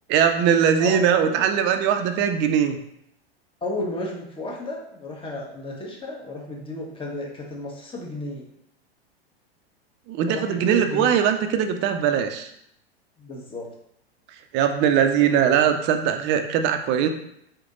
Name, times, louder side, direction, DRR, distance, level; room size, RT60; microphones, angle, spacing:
voice 1, 0.1-2.8 10.1-12.5 14.5-17.1, right 8 dB, 35° right, 6 dB, 0.6 m, -21 dB
voice 2, 3.6-8.4 10.3-11.1 13.2-13.7, left 1 dB, 15° left, -2 dB, 1.3 m, -32 dB
4.2 x 3.3 x 3.8 m, 0.76 s
hypercardioid pair, 100°, 32 cm